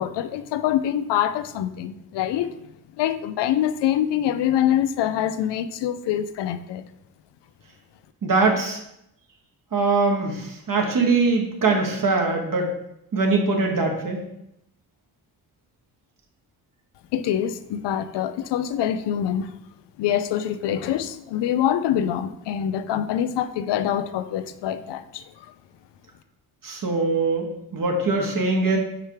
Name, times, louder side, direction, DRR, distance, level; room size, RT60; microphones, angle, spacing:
voice 1, 0.0-2.5 3.0-6.8 17.1-19.5 20.0-25.2, left 10 dB, 75° left, 11 dB, 0.6 m, -25 dB
voice 2, 8.2-8.8 9.7-12.7 13.1-14.2 26.6-28.8, right 3 dB, 50° right, 2 dB, 1.5 m, -22 dB
4.9 x 4.4 x 4.8 m, 0.79 s
cardioid pair, 65°, 42 cm